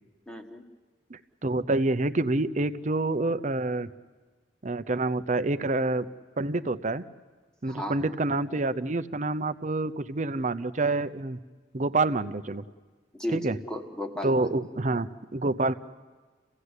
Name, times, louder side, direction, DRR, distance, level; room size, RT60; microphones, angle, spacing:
voice 1, 0.3-0.6 7.7-8.0 13.1-14.5, left 1 dB, 5° left, 5 dB, 1.4 m, -35 dB
voice 2, 1.1-3.9 4.6-6.1 6.4-7.0 7.6-11.4 11.7-12.6 13.3-13.6 14.2-15.7, right 2 dB, 40° right, 12 dB, 0.7 m, -27 dB
29.0 x 16.5 x 8.2 m, 1.4 s
head